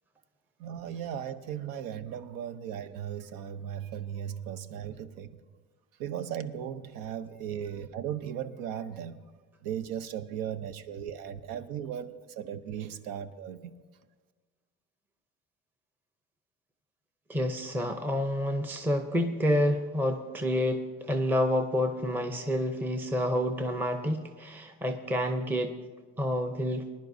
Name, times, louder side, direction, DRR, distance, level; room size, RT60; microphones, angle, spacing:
voice 1, 0.6-5.3 6.0-9.2 9.6-13.8, right 9 dB, 80° right, 10 dB, 0.8 m, -37 dB
voice 2, 17.3-25.7 26.2-26.9, equal, 5° right, 5 dB, 0.6 m, -28 dB
20.5 x 10.5 x 2.7 m, 1.4 s
cardioid pair, 110°, 33 cm